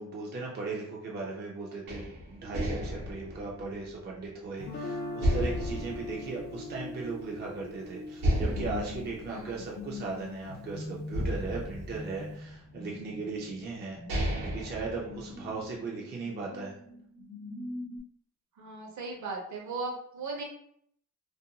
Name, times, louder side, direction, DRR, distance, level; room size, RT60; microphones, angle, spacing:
voice 1, 0.0-16.8, right 3 dB, 30° right, -2 dB, 0.4 m, -37 dB
sound 1, 1.9-4.7 5.2-7.1 7.5-7.6 8.2-10.6 11.1-12.7 13.4-13.5 13.9-15.7, equal, 90° right, 0.9 m, -33 dB
Guitar, 4.6-10.6, left 2 dB, 35° left, 0.4 m, -42 dB
sound 2, 5.8-18.0, left 2 dB, 70° left, 0.8 m, -44 dB
voice 2, 9.3-9.6 18.6-20.4, right 3 dB, 60° right, 0 dB, 0.7 m, -37 dB
2.5 x 2.2 x 2.7 m, 0.67 s
wide cardioid pair, 175°, 33 cm